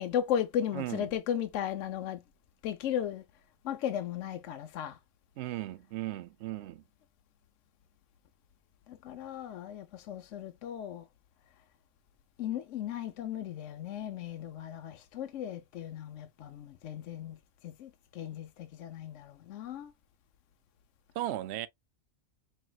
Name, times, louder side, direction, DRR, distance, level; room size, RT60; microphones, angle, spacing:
voice 1, 0.0-2.2 2.6-3.2 3.6-5.0 8.9-11.0 12.4-17.4 17.6-19.9, left 9 dB, 70° left, 0.9 m, -36 dB
voice 2, 0.7-1.1 5.4-6.8 21.2-21.7, right 14 dB, 65° right, 0.7 m, -36 dB
5.4 x 3.0 x 2.2 m
omnidirectional pair, 1.4 m